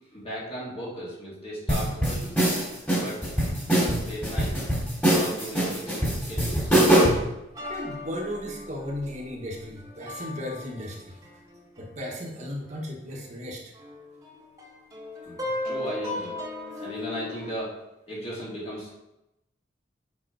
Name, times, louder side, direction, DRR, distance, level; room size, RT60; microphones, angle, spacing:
voice 1, 0.1-2.3 3.0-3.2 3.7-4.5 5.0-6.7 15.2-16.3 16.8-17.8 18.1-18.9, right 1 dB, 35° left, -6 dB, 2.7 m, -36 dB
sound 1, 1.7-7.3, right 1 dB, 10° left, 2.7 m, -23 dB
sound 2, 7.5-12.7 13.1-13.2 13.8-17.5, left 2 dB, 20° right, 1.5 m, -37 dB
voice 2, 7.7-11.2 11.8-13.6, left 1 dB, 40° right, -1 dB, 1.4 m, -35 dB
8.0 x 5.4 x 4.7 m, 0.90 s
head